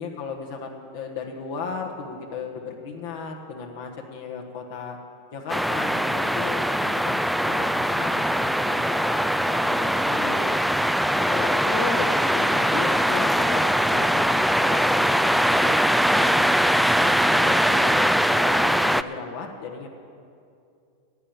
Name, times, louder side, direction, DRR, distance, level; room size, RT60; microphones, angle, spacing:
voice 1, 0.0-5.0 5.3-10.5 11.2-15.8 16.1-19.9, left 5 dB, 70° left, 1 dB, 1.4 m, -35 dB
sound 1, 5.5-19.0, equal, ahead, 0.4 m, -21 dB
11.0 x 9.0 x 8.8 m, 2.5 s
hypercardioid pair, 100°, 0 cm